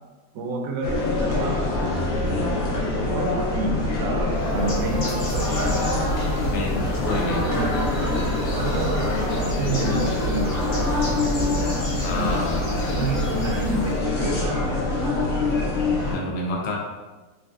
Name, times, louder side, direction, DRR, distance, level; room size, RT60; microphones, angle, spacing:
voice 1, 0.3-1.7 3.1-5.5 7.4-7.9 8.5-11.0 12.1-12.5 13.0-14.6, right 2 dB, 70° right, 1 dB, 0.8 m, -29 dB
sound 1, 0.8-16.2, left 2 dB, 60° left, 0.8 m, -25 dB
voice 2, 2.2-2.6 6.5-7.5 12.0-12.6 16.1-16.8, left 2 dB, 80° left, -2 dB, 1.3 m, -29 dB
Bird, 4.4-14.0, right 1 dB, 45° left, 1.0 m, -32 dB
4.0 x 2.5 x 2.3 m, 1.2 s
omnidirectional pair, 1.8 m